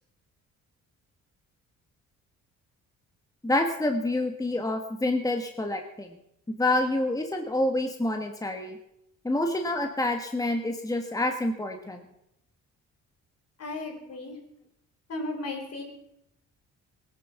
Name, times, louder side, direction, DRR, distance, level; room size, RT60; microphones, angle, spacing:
voice 1, 3.4-6.2 6.5-8.8 9.2-12.0, left 1 dB, 10° left, 4 dB, 1.5 m, -27 dB
voice 2, 13.6-14.4 15.1-15.8, left 2 dB, 55° left, 3 dB, 4.6 m, -35 dB
19.0 x 10.5 x 5.8 m, 0.81 s
cardioid pair, 90°, 30 cm